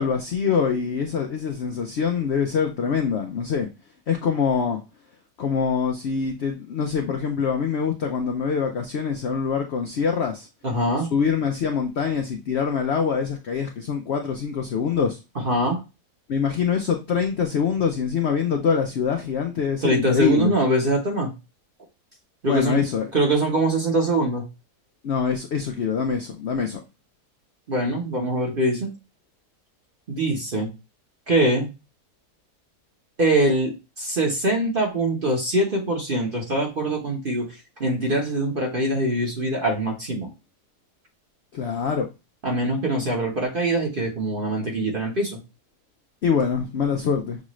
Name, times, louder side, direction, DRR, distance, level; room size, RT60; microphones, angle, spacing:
voice 1, 0.0-3.7 4.1-4.8 5.4-10.5 11.1-15.2 16.3-20.5 22.5-23.1 25.0-26.8 41.5-42.1 46.2-47.4, left 6 dB, 65° left, 0.6 m, -24 dB
voice 2, 10.6-11.1 15.3-15.8 19.8-21.3 22.4-22.8 23.1-24.4 27.7-28.9 30.1-30.7 31.3-31.7 33.2-33.7 34.0-37.5 37.8-40.3 42.4-45.4, right 1 dB, 40° right, 1.0 m, -23 dB
6.4 x 2.5 x 3.0 m
omnidirectional pair, 1.7 m